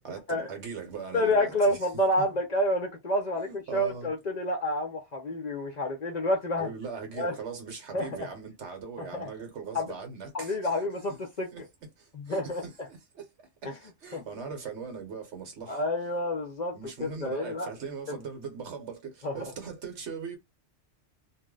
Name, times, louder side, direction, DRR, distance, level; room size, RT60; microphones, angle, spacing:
voice 1, 0.0-1.8 2.2-2.3 3.4-4.1 6.6-10.7 11.5-11.6 12.0-15.8 16.7-20.4, right 5 dB, 75° right, 1.3 m, -40 dB
voice 2, 1.1-6.7 7.2-7.3 7.9-8.3 9.0-9.3 9.7-9.9 10.3-11.7 12.1-12.6 13.6-13.8 14.1-14.2 15.7-17.7 18.1-18.2 19.2-19.5, left 1 dB, 45° left, 0.6 m, -29 dB
2.5 x 2.1 x 3.7 m
omnidirectional pair, 1.2 m